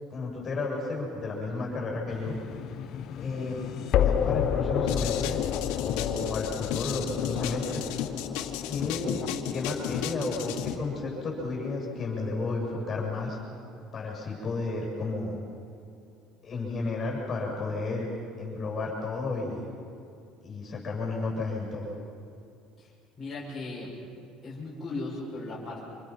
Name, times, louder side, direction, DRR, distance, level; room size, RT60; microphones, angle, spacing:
voice 1, 0.1-2.3 3.1-3.6 3.9-5.4 5.8-7.8 8.7-9.2 9.5-13.4 13.9-15.4 16.4-18.1 18.4-19.6 20.4-21.9, left 3 dB, 25° left, -2 dB, 7.3 m, -32 dB
sound 1, 2.1-13.1, left 9 dB, 40° left, 0.8 m, -32 dB
sound 2, 4.9-10.7, left 10 dB, 90° left, 1.9 m, -34 dB
voice 2, 23.2-23.9 24.4-25.8, left 2 dB, 5° left, -9 dB, 6.3 m, -37 dB
29.0 x 27.0 x 6.0 m, 2.5 s
cardioid pair, 175°, 0 cm